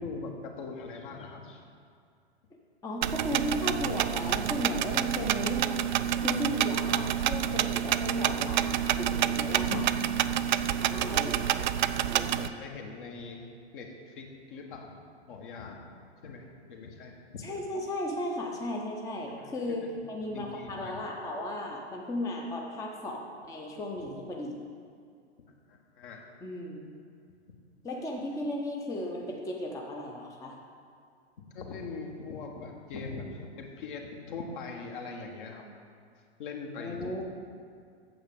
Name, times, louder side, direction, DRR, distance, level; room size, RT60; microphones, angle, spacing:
voice 1, 0.0-1.6 9.7-9.8 12.3-13.5 13.7-15.0 15.3-15.8 16.2-17.2 19.3-19.5 19.8-19.9 20.3-21.0 25.7-26.2 31.5-35.7 36.4-37.2, left 4 dB, 50° left, 2 dB, 1.6 m, -41 dB
voice 2, 2.8-5.9 6.2-9.9 10.8-11.5 12.1-12.3 17.4-24.7 26.4-27.0 27.8-30.6 36.8-37.2, left 1 dB, 10° left, 0 dB, 0.8 m, -35 dB
sound 1, 3.0-12.5, right 10 dB, 45° right, 0.4 m, -28 dB
8.7 x 7.4 x 6.8 m, 2.3 s
figure-of-eight pair, 105°, 34 cm